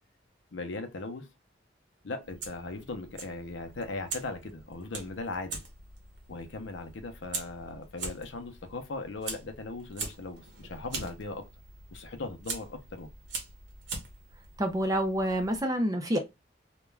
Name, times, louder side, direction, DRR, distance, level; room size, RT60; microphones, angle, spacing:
voice 1, 0.5-1.3 2.0-5.6 6.3-11.4 11.9-13.1, left 3 dB, 75° left, 0.6 m, -38 dB
Fire, 2.2-15.6, right 3 dB, 70° right, 0.8 m, -43 dB
voice 2, 14.6-16.2, equal, 20° right, 0.4 m, -27 dB
2.3 x 2.2 x 3.1 m
head